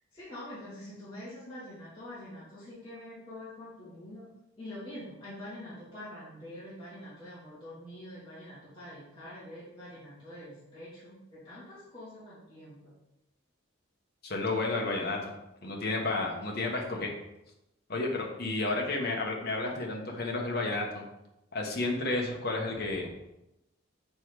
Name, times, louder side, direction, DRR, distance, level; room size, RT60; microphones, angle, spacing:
voice 1, 0.1-4.3 4.6-12.8, left 1 dB, 25° left, -11 dB, 2.2 m, -45 dB
voice 2, 14.2-15.3 15.6-17.1 17.9-21.0 21.5-23.1, left 2 dB, 50° left, 0 dB, 1.3 m, -31 dB
6.1 x 4.7 x 4.8 m, 0.90 s
head